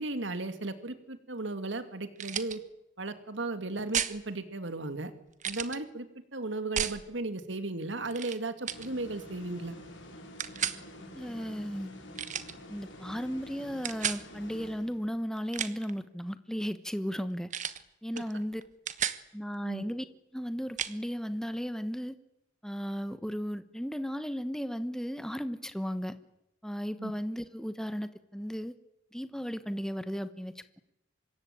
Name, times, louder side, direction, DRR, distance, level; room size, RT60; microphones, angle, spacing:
voice 1, 0.0-2.6 3.0-5.1 5.4-9.8 18.1-18.4 19.6-19.9 27.0-27.1, right 2 dB, 65° right, 10 dB, 2.2 m, -36 dB
sound 1, 2.2-2.6 3.9-4.2 5.4-5.8 6.8-7.0 8.1-8.4 8.7-8.9 10.4-10.8 12.2-12.5 13.8-14.2 15.4-15.9 17.5-17.8 18.2-18.3 18.6-19.2 20.8-20.9, right 9 dB, 40° right, 1.3 m, -33 dB
sound 2, 8.7-15.3, left 1 dB, 70° left, 6.7 m, -48 dB
voice 2, 11.1-11.9 12.7-17.5 18.0-18.6 19.3-20.0 20.3-22.2 22.6-26.2 26.6-28.7 29.1-30.8, equal, 5° left, 11 dB, 1.2 m, -35 dB
25.5 x 22.0 x 8.9 m, 0.83 s
head